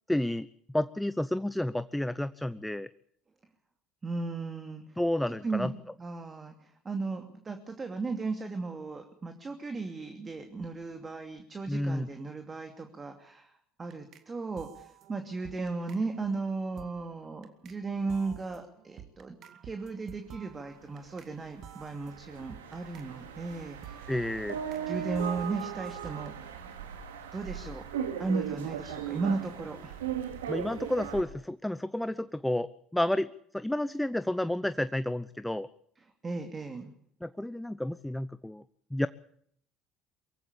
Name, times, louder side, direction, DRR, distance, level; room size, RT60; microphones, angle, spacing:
voice 1, 0.1-2.9 5.0-5.7 11.7-12.1 24.1-24.6 30.5-33.3 33.5-35.7 37.2-38.6 38.9-39.1, left 1 dB, 5° left, 15 dB, 0.8 m, -31 dB
voice 2, 4.0-4.8 5.4-5.7 6.0-19.4 19.6-24.1 24.9-26.5 27.3-27.8 28.2-30.0 36.2-36.9, right 3 dB, 25° right, 6 dB, 2.8 m, -36 dB
sound 1, 13.9-14.3 14.6-17.8 18.1-21.3 21.6-24.9 25.1-26.3, right 9 dB, 55° right, 2.2 m, -52 dB
sound 2, 21.1-21.2 21.5-31.2, right 8 dB, 80° right, 2.4 m, -38 dB
23.5 x 15.5 x 8.7 m, 0.67 s
hypercardioid pair, 65°, 0 cm